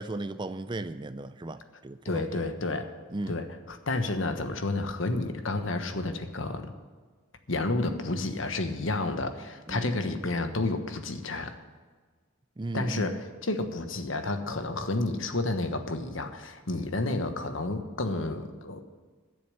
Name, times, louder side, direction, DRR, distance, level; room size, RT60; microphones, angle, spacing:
voice 1, 0.0-2.4 3.1-3.4 9.7-9.9 12.6-13.1, right 2 dB, 25° right, 12 dB, 0.4 m, -35 dB
voice 2, 2.0-2.9 3.3-6.7 7.5-11.5 12.7-18.8, left 2 dB, 75° left, 7 dB, 1.3 m, -30 dB
12.0 x 7.0 x 9.7 m, 1.4 s
head